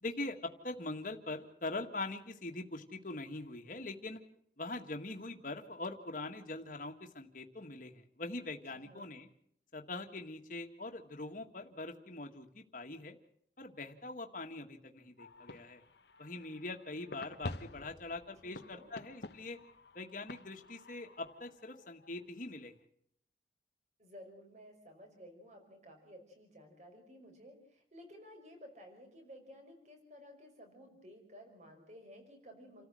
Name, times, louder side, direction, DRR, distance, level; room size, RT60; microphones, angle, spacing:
voice 1, 0.0-4.2 4.6-9.3 9.7-13.2 13.6-15.8 16.2-19.6 19.9-22.7, left 2 dB, 50° left, 3 dB, 1.9 m, -43 dB
voice 2, 8.7-9.1 18.4-18.9 24.0-32.9, equal, 40° right, 5 dB, 5.3 m, -55 dB
sound 1, 15.2-22.4, left 2 dB, 75° left, 1.1 m, -50 dB
29.0 x 14.0 x 7.8 m, 0.69 s
head